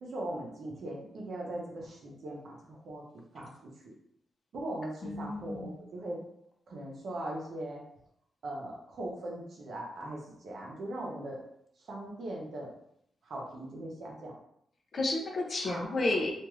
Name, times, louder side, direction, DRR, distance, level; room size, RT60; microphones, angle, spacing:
voice 1, 0.0-3.0 3.3-3.9 4.5-6.2 6.7-7.8 8.4-11.4 11.8-12.7 13.2-14.3 15.6-15.9, right 1 dB, 60° right, -2 dB, 0.8 m, -40 dB
voice 2, 5.0-5.8 14.9-16.3, left 2 dB, 40° left, 1 dB, 0.4 m, -31 dB
2.5 x 2.3 x 3.0 m, 0.73 s
wide cardioid pair, 160°, 0 cm